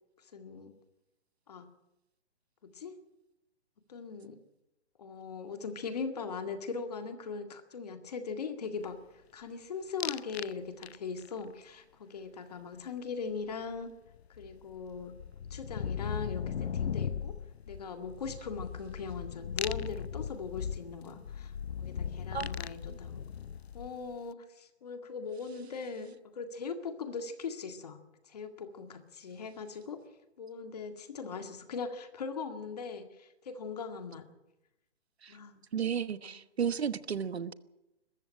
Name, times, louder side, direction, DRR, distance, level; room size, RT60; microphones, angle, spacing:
voice 1, 0.3-0.7 1.5-1.7 2.6-2.9 3.9-4.4 5.0-9.0 9.3-13.9 14.4-15.1 15.5-17.4 17.7-21.5 21.8-23.2 23.7-28.0 28.3-30.0 30.4-34.3 35.3-35.6 36.2-36.4, left 5 dB, 35° left, 7 dB, 2.0 m, -40 dB
sound 1, 10.0-10.5 10.8-11.3 13.7-13.8 14.1-24.1, left 8 dB, 70° left, 0.7 m, -38 dB
voice 2, 35.7-37.5, right 7 dB, 70° right, 14 dB, 1.2 m, -33 dB
22.0 x 14.5 x 8.9 m, 0.94 s
hypercardioid pair, 175°, 33 cm